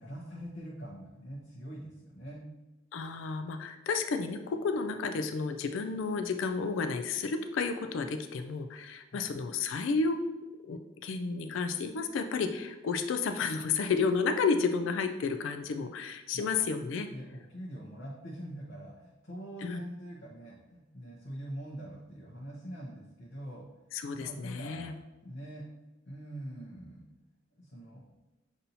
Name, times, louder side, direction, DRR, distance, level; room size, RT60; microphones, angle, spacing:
voice 1, 0.0-2.5 9.1-9.4 16.3-16.6 17.1-23.6 24.1-25.6 26.1-27.0 27.6-28.0, right 1 dB, 60° left, -5 dB, 0.8 m, -44 dB
voice 2, 2.9-10.2 10.6-17.1 19.6-19.8 23.9-25.0, left 4 dB, 85° left, 7 dB, 0.3 m, -31 dB
7.0 x 2.7 x 2.7 m, 1.1 s
head